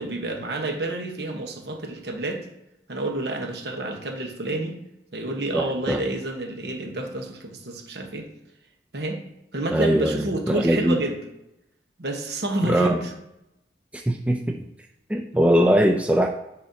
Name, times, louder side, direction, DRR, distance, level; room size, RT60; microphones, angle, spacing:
voice 1, 0.0-2.5 2.9-4.8 5.1-8.3 8.9-9.2 9.5-11.2 12.0-13.1, right 2 dB, 65° right, 3 dB, 1.1 m, -29 dB
voice 2, 5.5-6.0 9.7-11.0 12.6-13.0 13.9-14.6 15.1-16.3, right 1 dB, 5° right, 3 dB, 0.3 m, -21 dB
10.0 x 4.2 x 2.8 m, 0.87 s
head